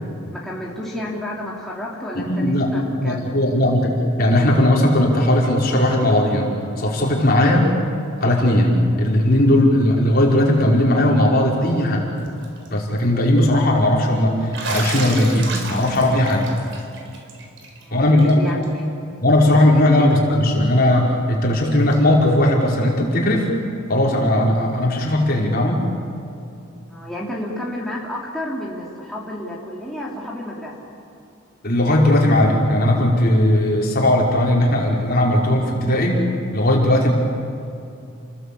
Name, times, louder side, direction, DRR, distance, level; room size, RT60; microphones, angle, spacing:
voice 1, 0.3-3.4 17.8-18.0 18.4-18.9 20.0-20.1 26.9-30.7, left 1 dB, ahead, -5 dB, 3.3 m, -31 dB
voice 2, 2.1-2.7 3.0-6.5 6.8-7.7 8.2-12.1 12.7-16.5 17.9-18.4 19.2-23.5 23.9-25.9 31.6-36.2 36.5-37.1, left 1 dB, 45° left, -2 dB, 5.0 m, -17 dB
Bathtub (filling or washing), 12.3-12.7 13.0-13.1 14.5-17.8 18.2-18.3 18.6-18.7 20.1-20.2 21.9-22.0, right 3 dB, 60° right, 4.3 m, -31 dB
30.0 x 20.5 x 8.6 m, 2.6 s
head